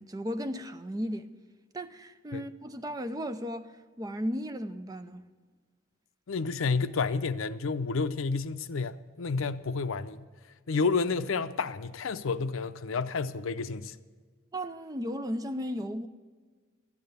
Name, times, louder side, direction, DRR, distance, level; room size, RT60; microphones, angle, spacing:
voice 1, 0.0-1.3 1.7-5.2 14.5-16.1, equal, 20° right, 0.5 m, -35 dB
voice 2, 6.3-10.3 10.7-13.9, left 4 dB, 75° left, 0.5 m, -30 dB
13.0 x 9.6 x 6.8 m
head